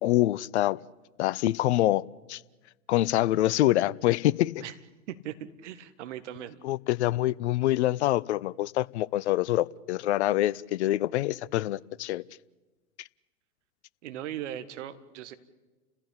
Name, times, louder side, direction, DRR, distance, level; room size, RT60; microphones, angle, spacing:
voice 1, 0.0-0.8 1.2-2.0 2.3-2.4 2.9-4.6 6.6-12.2, left 15 dB, 50° left, 0.7 m, -25 dB
voice 2, 5.1-6.6 14.0-15.3, right 11 dB, 55° right, 1.7 m, -39 dB
30.0 x 15.5 x 8.5 m
figure-of-eight pair, 100°, 43 cm